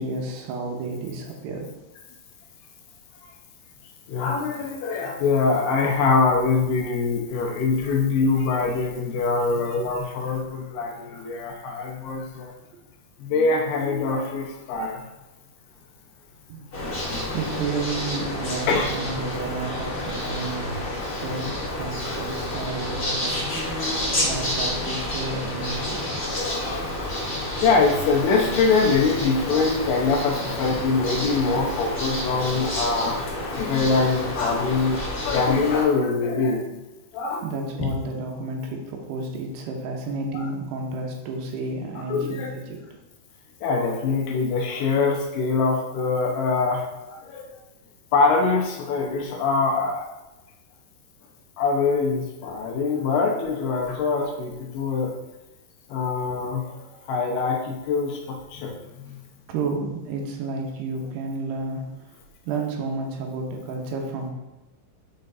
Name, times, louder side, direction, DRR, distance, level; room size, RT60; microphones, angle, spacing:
voice 1, 0.0-1.7 7.8-7.9 9.4-9.5 12.7-12.8 16.5-17.1 17.3-20.8 21.2-26.1 37.4-42.8 59.5-62.2 62.5-64.3, right 3 dB, 75° right, 1 dB, 2.9 m, -31 dB
voice 2, 4.1-12.5 13.2-15.0 16.8-17.4 18.7-18.9 22.0-22.2 26.4-35.0 35.2-36.7 37.1-37.4 37.8-37.9 40.3-40.5 42.0-42.5 43.6-47.5 48.1-50.1 51.6-55.1 55.9-56.8 57.1-59.2, left 4 dB, 80° left, 0 dB, 2.7 m, -24 dB
sound 1, 16.7-35.8, left 1 dB, 40° left, 1.3 m, -29 dB
6.6 x 5.7 x 3.9 m, 1.0 s
omnidirectional pair, 5.0 m